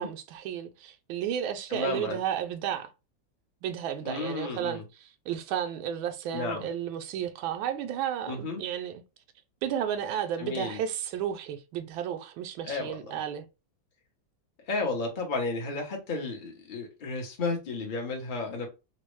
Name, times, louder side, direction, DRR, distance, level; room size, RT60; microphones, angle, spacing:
voice 1, 0.0-2.9 3.6-9.0 9.6-13.5, right 9 dB, 80° right, 1.3 m, -33 dB
voice 2, 1.7-2.2 4.0-4.8 6.3-6.6 8.3-8.6 10.4-10.8 12.6-13.0 14.7-18.7, left 3 dB, 50° left, 0.5 m, -32 dB
4.3 x 2.0 x 3.0 m
omnidirectional pair, 2.2 m